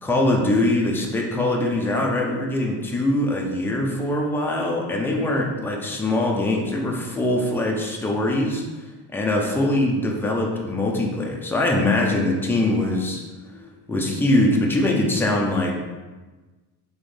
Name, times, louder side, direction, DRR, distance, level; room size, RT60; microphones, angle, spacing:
voice 1, 0.0-8.6 9.1-13.2 13.6-15.7, left 1 dB, 5° left, -1 dB, 0.4 m, -22 dB
4.0 x 3.0 x 3.2 m, 1.2 s
cardioid pair, 140°, 43 cm